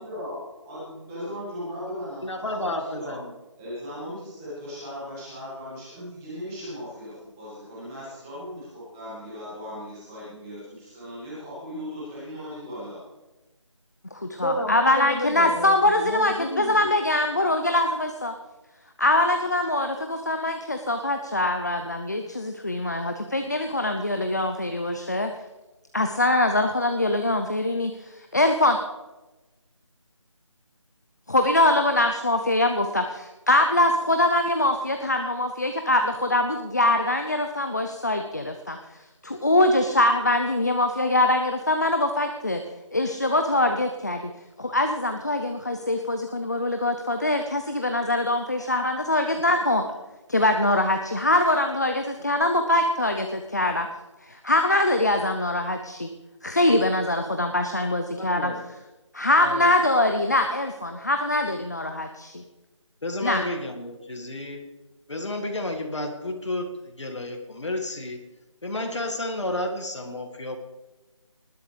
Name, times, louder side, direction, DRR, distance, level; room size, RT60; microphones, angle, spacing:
voice 1, 0.0-3.2 3.6-13.0, equal, 5° right, -10 dB, 2.1 m, -37 dB
voice 2, 2.2-3.3 14.4-16.8 58.2-58.6 59.4-59.7 63.0-64.7 65.1-68.2 68.6-70.6, left 1 dB, 65° left, 4 dB, 1.9 m, -31 dB
voice 3, 14.1-18.3 19.0-25.3 25.9-28.8 31.3-38.8 39.2-42.6 42.9-44.3 44.6-49.8 50.3-53.9 54.2-56.1 56.4-58.5 59.1-62.4 63.2-63.5, left 1 dB, 35° left, 5 dB, 0.7 m, -23 dB
19.5 x 11.5 x 3.4 m, 1.1 s
figure-of-eight pair, 180°, 16 cm